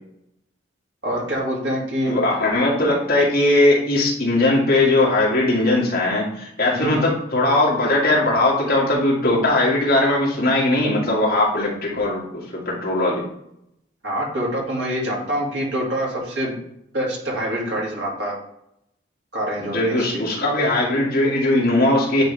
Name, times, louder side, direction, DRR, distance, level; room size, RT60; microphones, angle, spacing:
voice 1, 1.0-2.2 6.7-7.1 14.0-16.6 16.9-18.3 19.3-20.2, equal, 70° right, -4 dB, 2.5 m, -25 dB
voice 2, 2.1-12.2 12.5-13.2 19.6-22.2, left 2 dB, 50° left, -4 dB, 2.2 m, -19 dB
9.2 x 4.0 x 3.4 m, 0.76 s
head